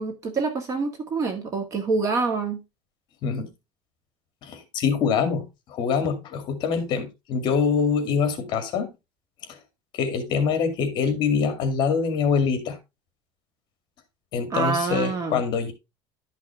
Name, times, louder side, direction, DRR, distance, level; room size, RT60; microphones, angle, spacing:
voice 1, 0.0-2.6 14.5-15.4, right 4 dB, 30° right, 1.8 m, -26 dB
voice 2, 4.4-8.9 9.4-9.6 9.9-12.8 14.3-15.7, left 6 dB, 40° left, 2.2 m, -24 dB
12.0 x 5.9 x 3.3 m
cardioid pair, 175°, 11 cm